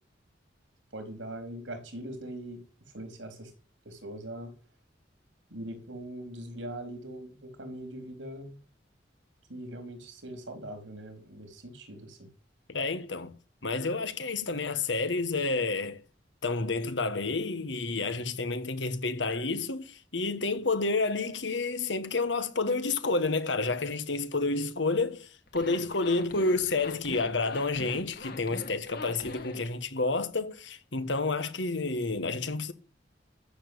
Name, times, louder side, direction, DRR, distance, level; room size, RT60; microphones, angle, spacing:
voice 1, 0.9-2.6 2.9-3.5 3.8-4.5 5.5-8.6 9.5-12.3, right 1 dB, 90° right, 4.3 m, -41 dB
voice 2, 12.7-13.3 13.6-16.0 16.4-32.7, left 3 dB, 80° left, 1.6 m, -30 dB
Zipper (clothing), 25.5-29.7, left 2 dB, 55° left, 1.9 m, -42 dB
13.0 x 7.2 x 8.2 m
head